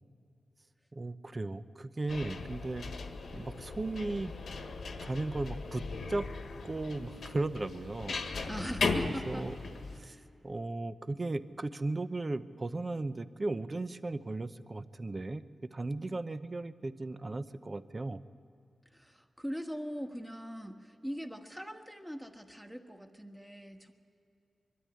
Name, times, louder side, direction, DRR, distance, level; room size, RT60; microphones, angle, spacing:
voice 1, 0.9-2.9 3.3-4.3 5.0-6.3 6.6-8.2 9.0-9.6 9.9-10.2 10.4-15.4 15.7-18.2, right 2 dB, 35° right, 12 dB, 0.7 m, -36 dB
sound 1, 2.1-10.0, left 4 dB, 80° left, 1.5 m, -37 dB
voice 2, 8.4-9.5 10.0-10.3 18.9-23.9, equal, 5° right, 4 dB, 1.5 m, -41 dB
22.5 x 12.5 x 9.8 m, 2.6 s
cardioid pair, 75°, 0 cm